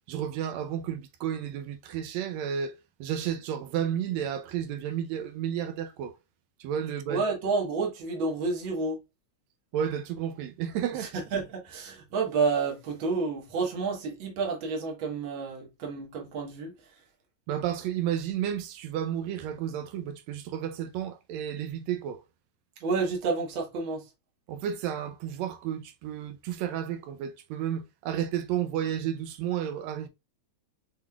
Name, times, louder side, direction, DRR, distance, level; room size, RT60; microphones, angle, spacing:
voice 1, 0.1-6.2 6.6-7.2 9.7-11.1 17.5-22.2 24.5-30.1, right 9 dB, 75° right, 1.8 m, -32 dB
voice 2, 7.1-9.0 11.0-16.7 22.8-24.1, right 4 dB, 55° right, 1.7 m, -30 dB
5.6 x 3.3 x 2.3 m
omnidirectional pair, 3.3 m